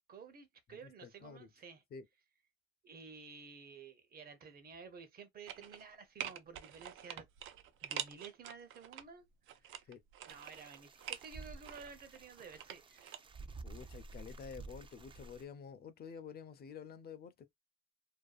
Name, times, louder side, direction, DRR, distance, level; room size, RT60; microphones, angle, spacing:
voice 1, 0.1-1.8 2.8-7.3 7.8-9.9 10.3-13.1 13.8-13.9, right 5 dB, 50° right, 0.8 m, -53 dB
voice 2, 0.8-1.5 1.9-2.0 9.9-10.0 13.6-17.5, left 6 dB, 50° left, 0.6 m, -50 dB
sound 1, 5.5-5.9 6.2-9.0 9.5-11.3 11.6-13.2 13.5-13.6, right 11 dB, 85° right, 0.4 m, -46 dB
sound 2, 10.3-15.4, right 3 dB, 25° right, 0.4 m, -52 dB
2.6 x 2.3 x 2.3 m
cardioid pair, 90°, 20 cm